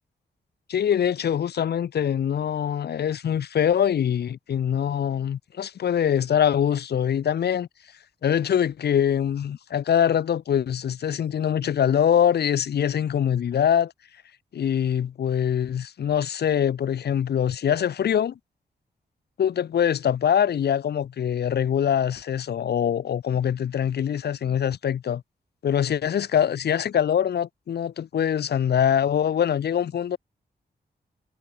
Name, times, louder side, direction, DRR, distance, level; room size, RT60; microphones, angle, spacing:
voice 1, 0.7-7.7 8.2-13.9 14.5-18.3 19.4-25.2 25.6-30.2, left 9 dB, 75° left, 0.8 m, -23 dB
wide cardioid pair, 135°, 17 cm